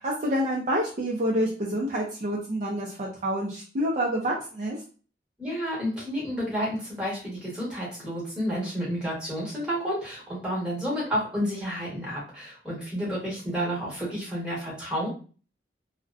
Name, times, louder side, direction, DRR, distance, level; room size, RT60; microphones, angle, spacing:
voice 1, 0.0-4.8, equal, 45° right, -2 dB, 0.4 m, -28 dB
voice 2, 5.4-15.1, equal, 5° right, -6 dB, 1.0 m, -30 dB
2.6 x 2.1 x 2.4 m, 0.39 s
head